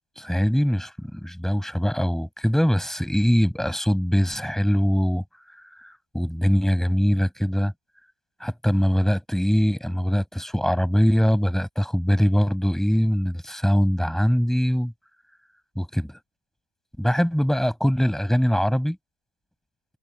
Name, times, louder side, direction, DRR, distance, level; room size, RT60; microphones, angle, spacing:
voice 1, 0.2-5.2 5.8-7.7 8.4-14.9 15.8-16.2 17.0-19.0, equal, ahead, 7.5 m, -22 dB
supercardioid pair, 105°, 37 cm